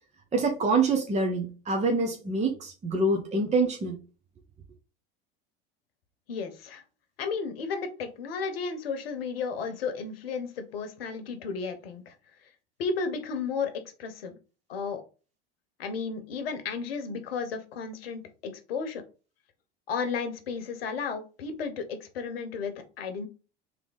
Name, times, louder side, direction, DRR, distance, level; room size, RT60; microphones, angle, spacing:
voice 1, 0.3-4.0, right 3 dB, 25° right, 1.0 m, -26 dB
voice 2, 6.3-6.8 7.2-12.1 12.8-13.7 14.0-14.4 14.7-15.0 15.8-19.0 19.9-23.3, left 5 dB, 85° left, 1.0 m, -33 dB
3.5 x 3.3 x 3.9 m
hypercardioid pair, 85°, 29 cm